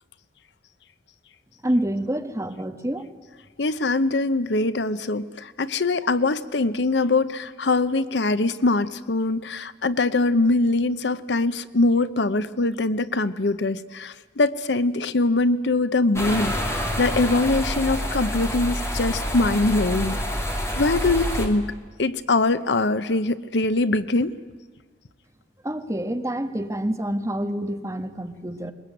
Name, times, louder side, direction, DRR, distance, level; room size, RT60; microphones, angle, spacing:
voice 1, 1.6-3.1 25.6-28.7, right 1 dB, 15° right, 6 dB, 1.4 m, -27 dB
voice 2, 3.6-20.2 20.8-21.7 22.0-24.3, left 2 dB, 75° left, 14 dB, 0.8 m, -23 dB
sound 1, 16.1-21.5, equal, 15° left, 2.8 m, -27 dB
22.0 x 20.5 x 9.2 m, 1.4 s
head